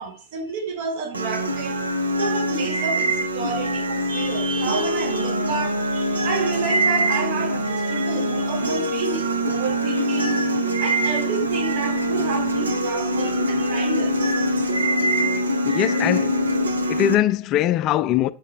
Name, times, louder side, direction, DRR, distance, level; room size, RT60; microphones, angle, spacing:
voice 1, 0.0-1.8 2.2-10.4 10.8-14.2, right 4 dB, 50° right, 1.0 m, -30 dB
sound 1, 1.1-17.2, right 1 dB, 75° right, 0.6 m, -23 dB
voice 2, 15.6-16.4 16.9-18.3, left 12 dB, 35° left, 0.3 m, -21 dB
8.2 x 3.2 x 3.9 m
figure-of-eight pair, 90°, 0 cm